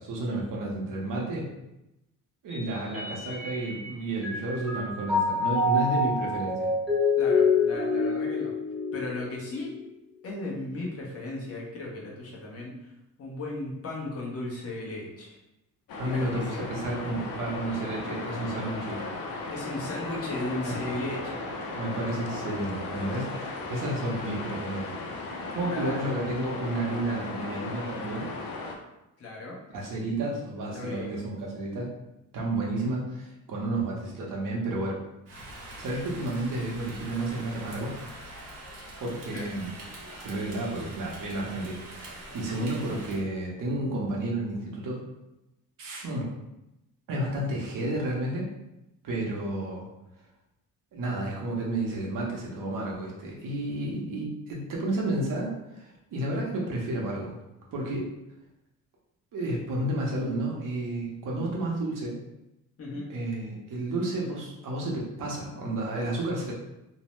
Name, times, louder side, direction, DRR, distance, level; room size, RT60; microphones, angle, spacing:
voice 1, 0.0-1.5 2.4-6.7 16.0-19.0 20.6-20.7 21.7-23.3 23.7-25.0 25.5-28.3 29.7-31.9 32.3-35.0 35.8-37.9 39.0-39.7 40.2-45.0 45.8-46.3 47.1-48.5 49.0-49.9 50.9-57.3 57.7-58.1 59.3-62.2 63.1-66.5, right 1 dB, 70° right, -3 dB, 0.7 m, -31 dB
Mallet percussion, 2.5-3.9 4.2-9.7, left 3 dB, ahead, 0.6 m, -27 dB
voice 2, 7.2-8.5 8.9-9.7 10.2-12.9 13.2-15.4 16.0-16.6 19.5-21.4 25.6-26.1 29.2-29.6 30.7-31.2 39.3-39.5 62.8-63.1, left 2 dB, 45° left, -3 dB, 0.8 m, -36 dB
sound 1, 15.9-28.7, left 3 dB, 85° left, 0.5 m, -36 dB
Rain, 35.3-43.2, right 1 dB, 50° right, 0.9 m, -44 dB
2.6 x 2.0 x 3.0 m, 0.91 s
cardioid pair, 135°, 34 cm